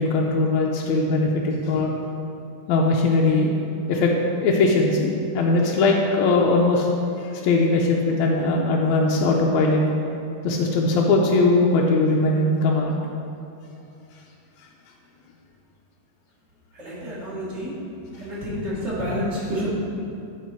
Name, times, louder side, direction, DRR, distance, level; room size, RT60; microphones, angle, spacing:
voice 1, 0.0-1.9 2.7-3.5 3.9-6.9 7.2-9.8 10.4-13.0, left 3 dB, 80° left, -1 dB, 1.7 m, -20 dB
voice 2, 16.7-17.8 18.2-19.7, equal, 30° right, -9 dB, 1.4 m, -29 dB
11.0 x 4.0 x 4.5 m, 2.6 s
omnidirectional pair, 3.7 m